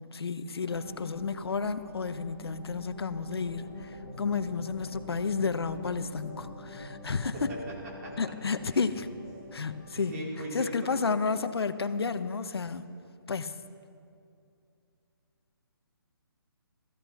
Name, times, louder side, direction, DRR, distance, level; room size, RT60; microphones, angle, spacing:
voice 1, 0.0-7.5 8.2-9.1 9.5-10.1 10.5-12.9 13.3-13.5, left 5 dB, 80° left, 12 dB, 0.9 m, -31 dB
sound 1, 0.7-9.9, left 2 dB, 35° left, 3.0 m, -45 dB
voice 2, 9.9-11.0, right 1 dB, 40° right, -5 dB, 4.5 m, -39 dB
16.0 x 14.5 x 5.7 m, 2.5 s
hypercardioid pair, 155°, 13 cm